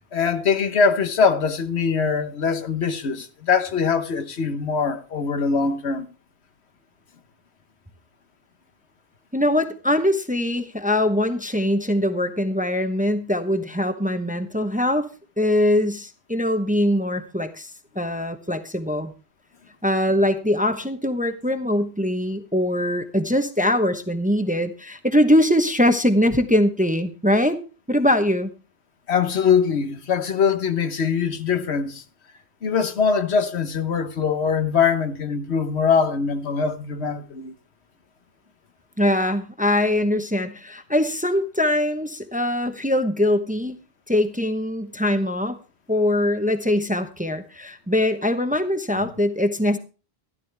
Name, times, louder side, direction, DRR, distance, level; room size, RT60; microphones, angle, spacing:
voice 1, 0.1-6.1 29.1-32.0 32.6-37.5, left 6 dB, 80° left, 1.3 m, -22 dB
voice 2, 9.3-15.1 15.4-17.7 17.9-19.1 19.8-27.6 27.9-28.5 39.0-43.8 44.1-45.6 45.9-49.8, left 1 dB, 10° right, 0.8 m, -22 dB
13.0 x 12.5 x 3.4 m
omnidirectional pair, 1.1 m